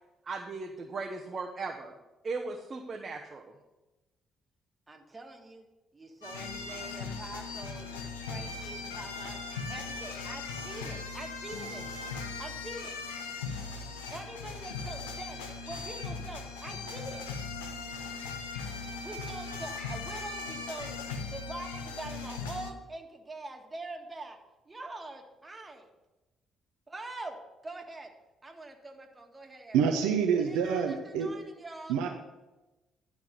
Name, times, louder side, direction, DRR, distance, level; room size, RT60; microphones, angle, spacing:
voice 1, 0.3-1.9 2.2-3.5, right 3 dB, 40° right, 1 dB, 1.0 m, -37 dB
voice 2, 4.9-5.7 5.9-9.4 9.7-12.1 12.4-13.0 14.1-15.4 15.7-17.2 19.0-21.0 21.3-24.4 24.7-25.9 26.9-27.4 27.6-28.1 28.4-29.9 30.3-32.0, right 2 dB, 25° right, 3 dB, 1.8 m, -44 dB
sound 1, 6.2-22.7, left 4 dB, 80° left, 0.8 m, -39 dB
voice 3, 29.7-31.3 31.9-32.1, right 7 dB, 70° right, 3 dB, 0.7 m, -27 dB
12.0 x 4.8 x 6.7 m, 1.1 s
figure-of-eight pair, 45°, 0 cm